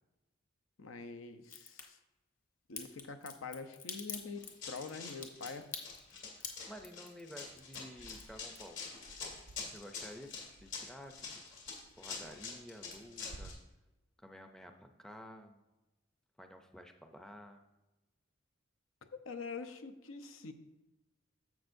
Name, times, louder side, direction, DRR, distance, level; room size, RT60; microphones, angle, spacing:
voice 1, 0.8-2.0 2.7-5.7 19.0-20.5, left 4 dB, 85° left, 8 dB, 0.7 m, -45 dB
Crack, 1.4-1.8 2.7-9.0 9.3-10.0 10.3-10.4, left 6 dB, 40° left, 1.1 m, -46 dB
Run, 4.3-13.5, left 5 dB, 60° left, 2.2 m, -46 dB
voice 2, 6.0-8.8 9.6-10.3 10.6-11.3 12.0-13.6 14.2-15.6 16.4-17.7, equal, 5° left, 5 dB, 0.5 m, -52 dB
sound 1, 8.0-13.5, right 2 dB, 80° right, 0.5 m, -57 dB
10.5 x 7.4 x 2.6 m, 1.0 s
head